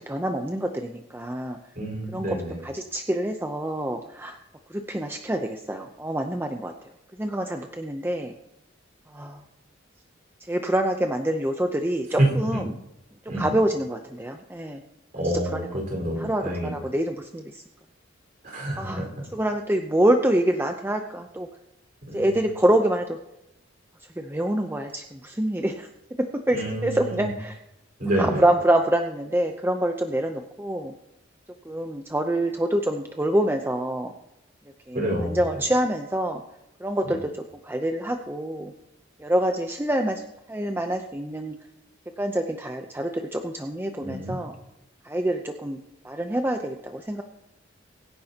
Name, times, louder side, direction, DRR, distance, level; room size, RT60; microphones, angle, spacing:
voice 1, 0.1-1.6 2.1-2.4 2.6-4.4 4.7-6.7 7.2-8.3 9.1-9.4 10.4-12.7 13.4-14.8 15.2-15.7 16.2-17.6 18.8-19.1 19.3-21.5 22.1-23.2 24.2-25.9 26.2-27.6 28.2-30.9 31.6-34.1 34.9-36.4 36.8-37.3 37.6-38.7 39.2-40.2 40.5-41.5 42.2-44.5 45.0-45.8 46.0-47.2, right 1 dB, 10° right, 4 dB, 0.6 m, -26 dB
voice 2, 1.7-2.6 12.2-12.6 13.3-13.5 15.1-16.8 18.4-19.2 22.1-22.3 26.5-27.3 28.0-28.4 34.9-35.4 37.0-37.2 44.0-44.4, right 1 dB, 45° right, -1 dB, 4.6 m, -28 dB
23.5 x 10.0 x 2.9 m, 0.86 s
head